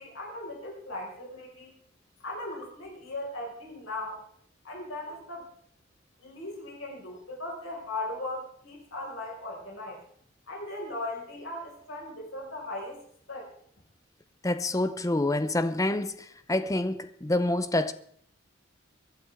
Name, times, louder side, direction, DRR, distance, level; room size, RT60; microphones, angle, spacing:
voice 1, 0.0-1.7 2.2-4.2 4.6-5.5 6.2-10.0 10.5-13.0 13.3-13.5, left 2 dB, 80° left, 5.2 m, -38 dB
voice 2, 14.4-17.9, left 1 dB, 15° left, 0.6 m, -27 dB
23.0 x 11.5 x 3.6 m
head